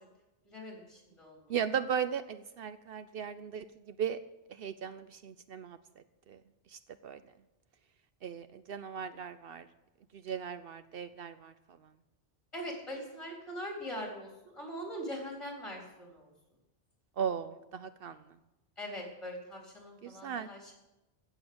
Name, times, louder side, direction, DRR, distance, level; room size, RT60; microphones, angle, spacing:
voice 1, 0.5-1.4 12.5-16.3 18.8-20.7, equal, 30° left, -1 dB, 4.0 m, -42 dB
voice 2, 1.5-4.2 4.6-5.8 6.3-6.4 6.7-7.2 8.2-9.6 10.1-11.5 17.2-18.2 20.0-20.5, right 8 dB, 70° right, 12 dB, 0.8 m, -37 dB
15.5 x 7.1 x 7.9 m, 0.99 s
omnidirectional pair, 1.0 m